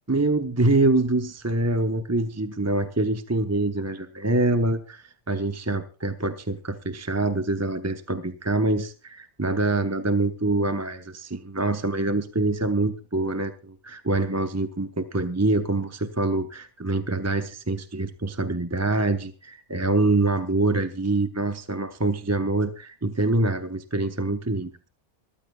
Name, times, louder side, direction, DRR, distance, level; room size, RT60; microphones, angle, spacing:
voice 1, 0.1-24.7, right 2 dB, 15° right, 8 dB, 0.7 m, -25 dB
25.0 x 14.0 x 2.3 m, 0.34 s
omnidirectional pair, 1.5 m